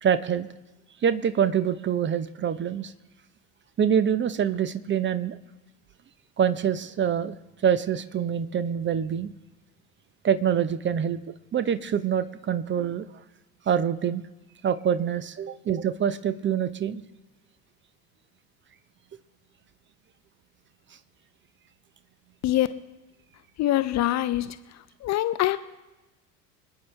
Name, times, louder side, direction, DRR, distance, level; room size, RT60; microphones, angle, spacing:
voice 1, 0.0-0.5 1.0-2.9 3.8-5.4 6.4-7.4 7.6-9.3 10.2-11.2 11.5-13.1 13.7-14.2 14.6-17.0, right 8 dB, 25° right, 13 dB, 0.9 m, -25 dB
voice 2, 23.6-24.6 25.0-25.6, left 14 dB, 35° left, 13 dB, 0.7 m, -24 dB
26.0 x 9.3 x 3.3 m, 1.1 s
figure-of-eight pair, 70°, 46 cm